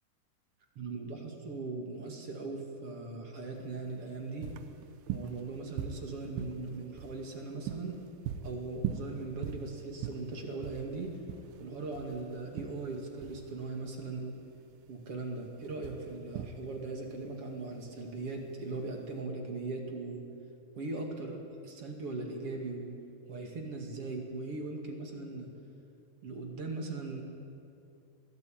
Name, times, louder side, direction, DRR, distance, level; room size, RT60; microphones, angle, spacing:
voice 1, 0.8-4.5 5.1-8.0 8.4-11.2 11.6-14.4 14.9-20.2 20.7-23.0 23.3-25.5 26.2-27.2, right 3 dB, 40° right, 2 dB, 2.6 m, -39 dB
sound 1, 3.6-19.2, right 9 dB, 75° right, 2.5 m, -42 dB
22.5 x 16.5 x 8.8 m, 2.6 s
omnidirectional pair, 4.7 m